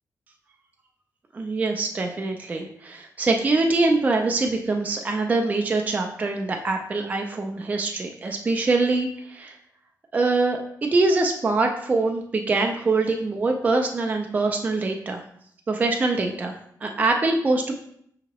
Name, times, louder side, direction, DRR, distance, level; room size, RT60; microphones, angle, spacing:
voice 1, 1.3-9.6 10.1-15.2 15.7-16.5 16.8-17.8, right 3 dB, 25° right, 3 dB, 0.3 m, -24 dB
6.0 x 2.8 x 2.9 m, 0.68 s
wide cardioid pair, 170°, 7 cm